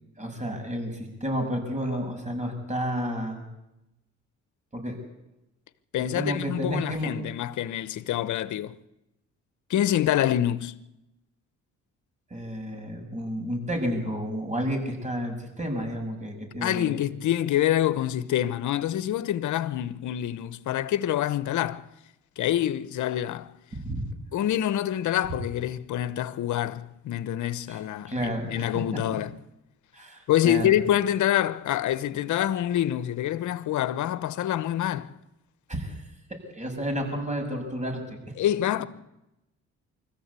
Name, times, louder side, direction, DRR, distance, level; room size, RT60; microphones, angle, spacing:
voice 1, 0.2-3.4 4.7-5.0 6.1-7.1 12.3-17.0 23.7-24.1 27.7-27.8 28.1-28.7 29.9-30.7 35.7-36.0 36.3-38.2, equal, 25° right, 7.0 m, -31 dB
voice 2, 5.9-8.8 9.7-10.7 16.6-21.9 22.4-23.5 24.3-29.3 30.3-35.1 38.4-38.8, left 11 dB, 75° left, 1.1 m, -26 dB
24.5 x 14.5 x 8.4 m
cardioid pair, 90°, 30 cm